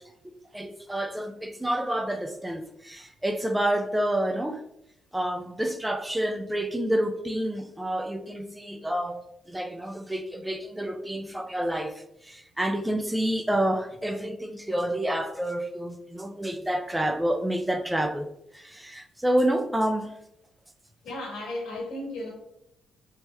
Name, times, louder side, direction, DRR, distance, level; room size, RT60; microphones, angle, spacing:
voice 1, 0.2-4.6 5.1-9.2 9.5-11.9 12.3-18.3 18.5-20.1, right 1 dB, 10° right, 0.3 m, -28 dB
voice 2, 21.0-22.3, left 1 dB, 80° left, 1.2 m, -34 dB
3.0 x 3.0 x 2.2 m
cardioid pair, 90°, 0 cm